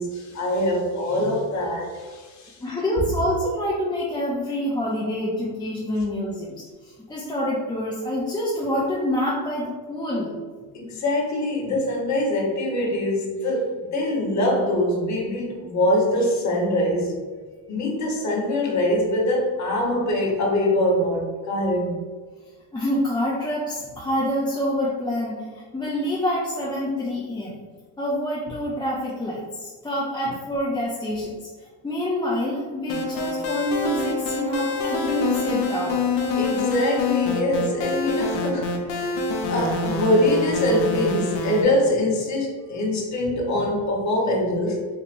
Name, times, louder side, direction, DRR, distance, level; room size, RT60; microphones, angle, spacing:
voice 1, 0.0-2.6 10.7-17.2 17.7-22.0 36.4-39.1 39.5-44.9, left 1 dB, 40° left, -1 dB, 1.0 m, -23 dB
voice 2, 2.6-10.4 22.7-27.6 28.0-31.4 31.8-36.1, equal, 10° left, -6 dB, 0.4 m, -27 dB
sound 1, 32.9-41.6, left 3 dB, 90° left, 0.7 m, -26 dB
4.2 x 2.8 x 2.5 m, 1.4 s
cardioid pair, 110°, 44 cm